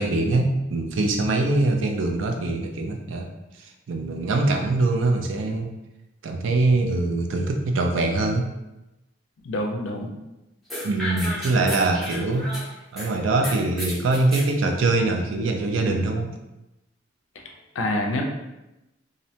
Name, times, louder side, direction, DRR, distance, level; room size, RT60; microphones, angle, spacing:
voice 1, 0.0-3.3 3.6-5.7 6.2-8.5 10.8-12.5 12.9-16.3, right 2 dB, 85° right, 3 dB, 0.4 m, -23 dB
voice 2, 9.4-10.1 17.7-18.2, left 1 dB, 85° left, 2 dB, 0.4 m, -26 dB
sound 1, 10.7-13.1 13.4-14.5, equal, ahead, 0.6 m, -33 dB
2.6 x 2.1 x 2.7 m, 0.96 s
head